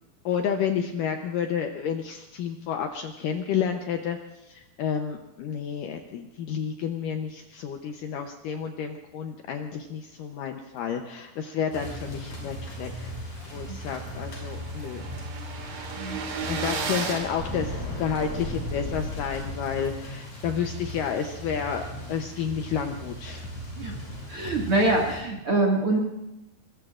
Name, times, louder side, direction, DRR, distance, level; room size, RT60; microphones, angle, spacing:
voice 1, 0.3-4.2 4.5-13.1 13.5-15.1 16.5-23.5, left 7 dB, 75° left, 4 dB, 2.1 m, -30 dB
sound 1, 11.7-25.2, equal, 45° left, 7.3 m, -37 dB
sound 2, 12.8-12.9 13.3-13.4 13.5-18.4, right 4 dB, 85° right, 4.2 m, -35 dB
voice 2, 24.3-26.0, right 2 dB, 45° right, -1 dB, 2.2 m, -24 dB
24.0 x 22.0 x 2.5 m, 0.93 s
omnidirectional pair, 4.6 m